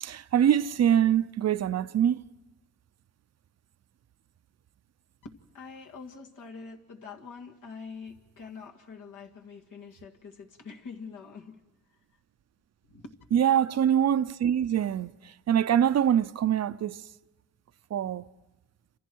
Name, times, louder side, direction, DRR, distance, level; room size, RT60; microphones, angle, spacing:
voice 1, 0.0-2.2 13.3-17.0 17.9-18.3, right 9 dB, 55° right, 0.7 m, -24 dB
voice 2, 5.2-11.6 12.8-13.2, left 5 dB, 75° left, 2.0 m, -45 dB
28.5 x 27.0 x 4.6 m
cardioid pair, 110°, 32 cm